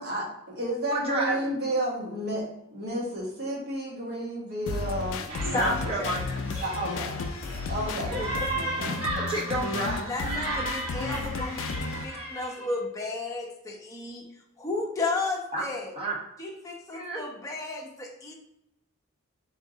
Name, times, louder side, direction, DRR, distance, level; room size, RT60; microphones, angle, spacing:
voice 1, 0.0-2.4 2.7-6.0 6.6-7.1 7.7-8.1 8.5-9.0, right 1 dB, 50° right, -3 dB, 1.2 m, -32 dB
voice 2, 0.9-1.5 5.5-6.4 8.1-8.3 8.8-10.1 12.6-12.7 15.5-15.6 15.9-16.2 16.9-17.2, right 1 dB, 30° right, -3 dB, 1.0 m, -31 dB
sound 1, 4.7-12.1, left 4 dB, 65° left, 0.3 m, -33 dB
sound 2, 5.3-12.7, right 2 dB, 70° right, 1.2 m, -36 dB
voice 3, 5.5-6.1 6.9-7.2 10.0-14.2 14.6-15.9 16.4-18.3, left 3 dB, 15° left, -1 dB, 0.7 m, -33 dB
3.6 x 2.6 x 3.8 m, 0.83 s
head